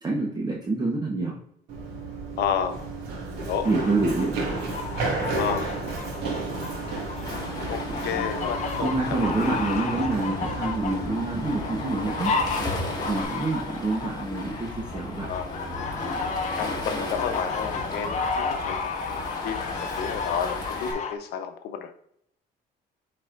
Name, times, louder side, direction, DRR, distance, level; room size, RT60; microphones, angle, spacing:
voice 1, 0.0-1.4 3.6-4.4 8.0-8.3 8.8-12.3 13.1-15.3, right 2 dB, 25° right, -2 dB, 1.0 m, -27 dB
Run, 1.7-13.2, right 3 dB, 85° right, 1.9 m, -33 dB
voice 2, 2.4-2.8 3.4-3.7 5.4-5.7 7.7-9.2 9.9-10.0 13.1-13.2 15.2-15.5 16.2-16.3 16.6-18.8 19.1-21.9, left 8 dB, 75° left, 7 dB, 0.8 m, -31 dB
sound 1, 3.6-21.1, left 4 dB, 45° left, 0.9 m, -33 dB
Waves surf, 7.2-20.9, left 2 dB, 25° left, 1.7 m, -35 dB
9.6 x 4.3 x 2.5 m, 0.72 s
cardioid pair, 110°, 17 cm